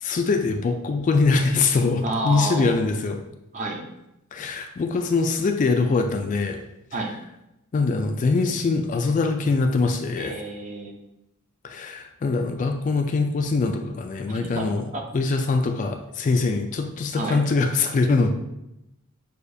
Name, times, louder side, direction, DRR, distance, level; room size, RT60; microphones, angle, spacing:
voice 1, 0.0-3.2 4.3-6.6 7.7-10.3 11.6-18.3, left 3 dB, 35° left, 5 dB, 0.3 m, -23 dB
voice 2, 2.0-2.9 3.5-3.8 6.9-7.1 10.2-10.9 14.5-14.6 14.9-15.0 17.2-17.4, right 1 dB, 35° right, 2 dB, 0.6 m, -29 dB
6.6 x 2.4 x 2.6 m, 0.89 s
head